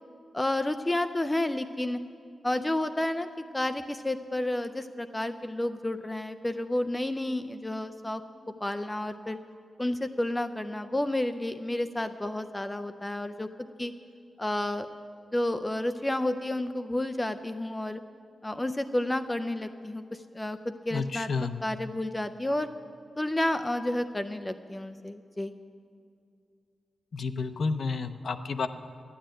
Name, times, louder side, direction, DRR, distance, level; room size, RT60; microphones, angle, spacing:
voice 1, 0.3-2.0 2.4-3.3 3.5-8.2 8.6-9.4 9.8-13.5 13.8-13.9 14.4-14.9 15.3-18.0 18.4-22.7 23.2-25.5, left 1 dB, 10° left, 9 dB, 0.4 m, -31 dB
voice 2, 20.9-21.6 27.1-28.7, left 4 dB, 50° left, 9 dB, 0.6 m, -30 dB
13.0 x 10.0 x 8.9 m, 2.3 s
wide cardioid pair, 180°, 0 cm